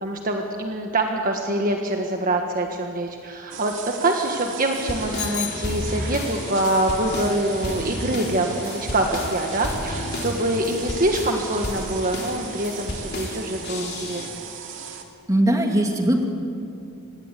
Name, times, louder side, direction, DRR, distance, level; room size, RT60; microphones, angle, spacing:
voice 1, 0.0-14.4, right 1 dB, 40° right, 3 dB, 1.5 m, -25 dB
sound 1, 3.5-15.0, right 7 dB, 60° right, 2.3 m, -37 dB
sound 2, 4.7-14.3, left 1 dB, 50° left, 3.0 m, -32 dB
Bicycle bell, 5.2-6.4, left 13 dB, 80° left, 1.4 m, -34 dB
voice 2, 15.3-16.3, right 1 dB, 15° right, 2 dB, 2.6 m, -20 dB
25.0 x 19.0 x 8.4 m, 2.5 s
head